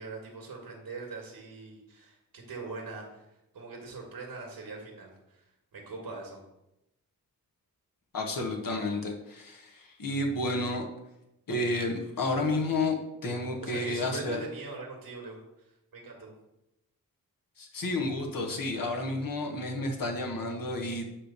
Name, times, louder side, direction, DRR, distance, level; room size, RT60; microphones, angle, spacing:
voice 1, 0.0-3.3 3.5-5.4 5.7-6.4 13.6-16.3, right 3 dB, 90° right, -1 dB, 1.9 m, -42 dB
voice 2, 8.1-10.9 11.5-13.0 13.2-14.4 17.6-21.0, left 2 dB, 70° left, 1 dB, 1.6 m, -31 dB
9.3 x 3.3 x 6.8 m, 0.89 s
wide cardioid pair, 100°, 35 cm